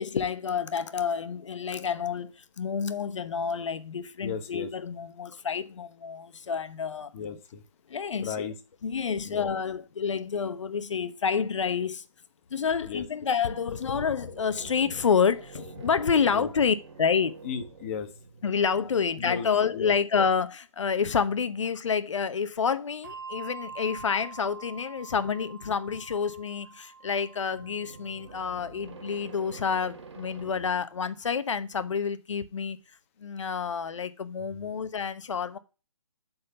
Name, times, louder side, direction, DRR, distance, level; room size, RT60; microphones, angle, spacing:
voice 1, 0.0-7.1 7.9-8.5 8.8-12.0 12.5-17.4 18.4-32.8 33.2-35.6, left 6 dB, 65° left, 1.0 m, -28 dB
voice 2, 4.2-4.7 7.1-7.6 8.2-8.5 9.3-9.5 12.8-13.0 16.3-16.5 17.4-18.1 19.2-19.5 19.7-19.9 34.5-34.6, left 6 dB, 25° left, 1.2 m, -35 dB
sound 1, 13.0-19.8 27.4-30.8, right 4 dB, 60° right, 1.6 m, -48 dB
Bell, 23.0-29.9, right 5 dB, 40° right, 1.0 m, -46 dB
7.8 x 4.3 x 6.8 m
hypercardioid pair, 165°, 17 cm